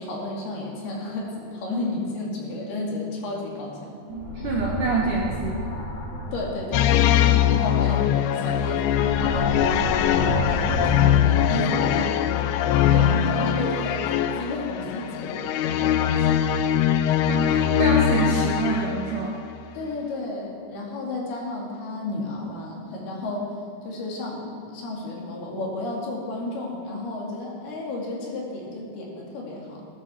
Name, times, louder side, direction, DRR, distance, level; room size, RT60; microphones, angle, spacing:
voice 1, 0.0-4.0 6.3-9.7 10.0-12.2 12.7-16.4 19.7-23.5 23.8-29.9, left 2 dB, 60° left, -2 dB, 4.2 m, -32 dB
sound 1, 4.1-6.6 8.6-11.1, equal, 25° left, 1.1 m, -30 dB
voice 2, 4.1-5.7 17.3-19.4, right 3 dB, 70° right, -2 dB, 2.0 m, -27 dB
sound 2, 6.7-19.3, left 10 dB, 90° left, 2.2 m, -22 dB
20.5 x 12.5 x 4.5 m, 2.4 s
omnidirectional pair, 5.3 m